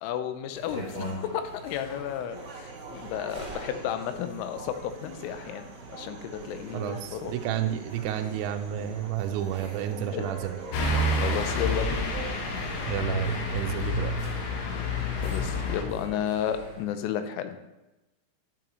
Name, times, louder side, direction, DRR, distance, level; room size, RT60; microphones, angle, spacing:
voice 1, 0.0-5.7 5.9-7.3 10.1-10.3 11.1-12.1 15.2-17.6, left 9 dB, 85° left, 9 dB, 3.3 m, -33 dB
sound 1, 0.5-16.8, right 1 dB, 5° right, 1.0 m, -44 dB
sound 2, 2.3-13.0, right 4 dB, 65° right, 2.6 m, -45 dB
voice 2, 6.7-10.5 12.9-14.1, right 10 dB, 80° right, 6 dB, 2.7 m, -31 dB
sound 3, 10.7-15.8, left 1 dB, 70° left, 2.8 m, -28 dB
11.0 x 8.9 x 3.1 m, 1.0 s
omnidirectional pair, 5.7 m